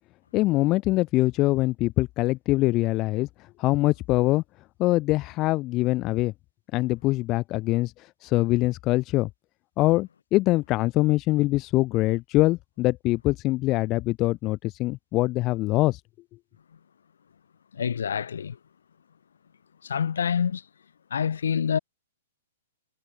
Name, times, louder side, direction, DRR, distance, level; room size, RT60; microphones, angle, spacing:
voice 1, 0.3-3.3 3.6-4.4 4.8-6.3 6.7-9.3 9.8-16.0, left 19 dB, 35° left, 1.0 m, -23 dB
voice 2, 17.7-18.6 19.8-20.6 21.1-21.8, left 7 dB, 70° left, 4.3 m, -26 dB
figure-of-eight pair, 115°, 0 cm